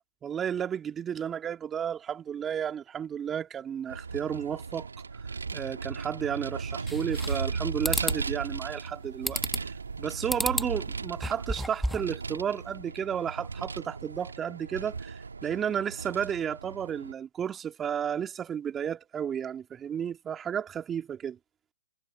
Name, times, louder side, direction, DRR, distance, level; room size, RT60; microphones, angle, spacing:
voice 1, 0.2-4.9 5.5-21.4, right 8 dB, 15° right, 2.2 m, -33 dB
Vehicle, 3.9-17.1, right 4 dB, 80° right, 1.5 m, -37 dB
sound 1, 6.9-7.5 7.8-8.2 9.3-9.8 10.3-10.7 11.1-12.1, equal, ahead, 1.5 m, -31 dB
hypercardioid pair, 125°, 0 cm